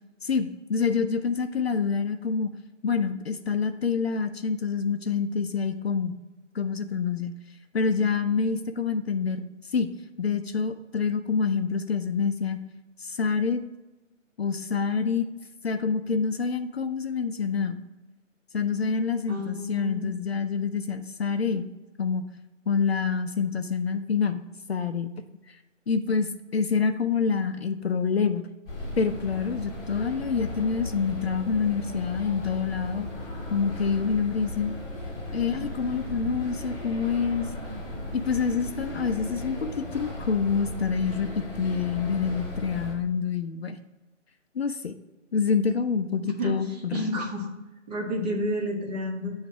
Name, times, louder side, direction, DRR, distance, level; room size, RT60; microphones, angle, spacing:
voice 1, 0.2-2.5 2.8-6.2 6.5-7.3 7.7-9.9 10.2-12.6 13.0-13.6 14.4-15.3 15.6-17.8 18.5-21.7 22.0-22.2 22.7-25.1 25.9-28.5 29.0-33.1 33.5-34.8 35.3-37.5 38.1-43.8 44.6-44.9 45.3-47.1, left 5 dB, 55° left, 9 dB, 0.5 m, -27 dB
voice 2, 19.3-20.1 46.2-47.5 47.9-49.3, equal, 30° right, 0 dB, 1.1 m, -31 dB
sound 1, 28.7-42.9, left 1 dB, 10° left, 1.1 m, -36 dB
8.8 x 3.2 x 4.6 m, 1.1 s
figure-of-eight pair, 145°, 38 cm